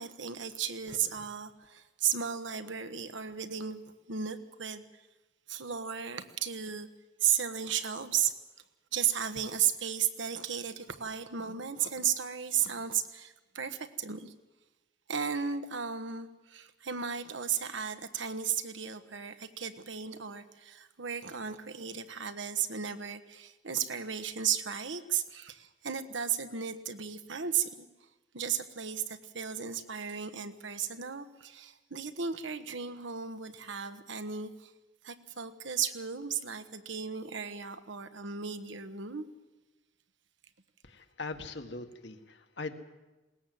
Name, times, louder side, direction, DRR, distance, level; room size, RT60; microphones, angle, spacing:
voice 1, 0.0-3.8 4.1-4.8 5.5-6.9 7.2-8.3 8.9-14.3 15.1-27.9 28.3-34.7 35.0-39.3, right 8 dB, 85° right, 9 dB, 1.2 m, -34 dB
voice 2, 40.8-42.7, left 3 dB, 70° left, 6 dB, 1.7 m, -41 dB
21.0 x 18.5 x 7.8 m, 1.1 s
head